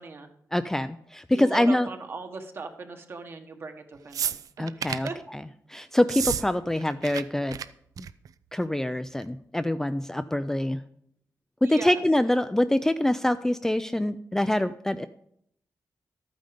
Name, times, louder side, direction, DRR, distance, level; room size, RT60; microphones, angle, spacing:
voice 1, 0.0-0.3 1.3-5.2 11.6-12.0, right 3 dB, 40° right, 6 dB, 1.4 m, -38 dB
voice 2, 0.5-1.9 4.6-5.4 5.7-7.6 8.0-8.1 8.5-10.8 11.6-15.1, left 1 dB, 5° left, 10 dB, 0.4 m, -25 dB
sound 1, 4.1-5.1 6.0-6.4 6.7-7.2 7.5-7.6 8.0-8.3 9.2-9.3, right 8 dB, 75° right, 0.5 m, -31 dB
13.0 x 9.2 x 5.2 m, 0.70 s
wide cardioid pair, 160°, 6 cm